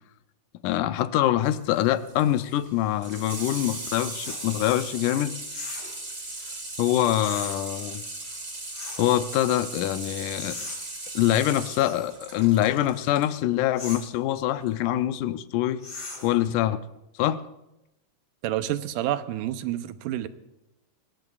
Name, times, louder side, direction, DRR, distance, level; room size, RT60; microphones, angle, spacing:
voice 1, 0.6-5.3 6.8-8.0 9.0-10.6 11.2-15.8 16.2-16.8 17.2-17.4, left 13 dB, 75° left, 11 dB, 2.0 m, -24 dB
Water tap faucet / Sink (filling or washing), 1.4-13.3 14.6-14.7, right 2 dB, 25° right, 2.9 m, -38 dB
sound 1, 4.2-4.5 5.5-6.0 7.2-7.6 8.7-9.1 10.4-10.8 11.8-12.1 13.8-14.1 15.8-16.4, left 3 dB, 45° left, 7.1 m, -38 dB
voice 2, 18.4-20.3, right 13 dB, 80° right, 10 dB, 2.2 m, -29 dB
25.0 x 22.5 x 2.4 m, 0.93 s
omnidirectional pair, 3.9 m